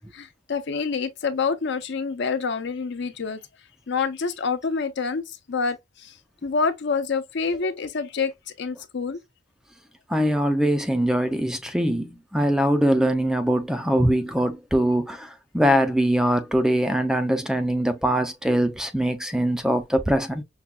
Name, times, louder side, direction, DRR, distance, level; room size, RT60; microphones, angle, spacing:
voice 1, 0.1-3.4 3.9-6.2 6.4-8.3 8.6-9.2, left 5 dB, 60° left, 0.6 m, -27 dB
voice 2, 10.1-20.4, equal, 5° right, 0.3 m, -22 dB
5.7 x 2.2 x 2.3 m
head